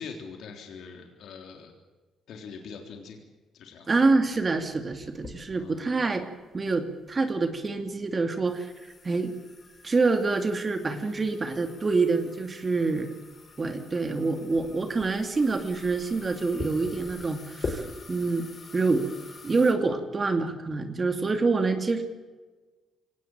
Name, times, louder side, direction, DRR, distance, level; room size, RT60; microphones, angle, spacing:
voice 1, 0.0-1.7 2.3-3.2 3.5-3.9 5.5-5.9 11.0-11.1, left 5 dB, 75° left, 3 dB, 3.5 m, -43 dB
voice 2, 3.9-6.3 6.5-8.7 9.0-9.3 9.8-13.1 13.6-18.5 18.7-22.0, right 3 dB, 30° right, 6 dB, 2.6 m, -26 dB
sound 1, 4.0-19.7, left 3 dB, 40° left, 5.4 m, -43 dB
24.0 x 18.5 x 9.1 m, 1.3 s
cardioid pair, 90°, 0 cm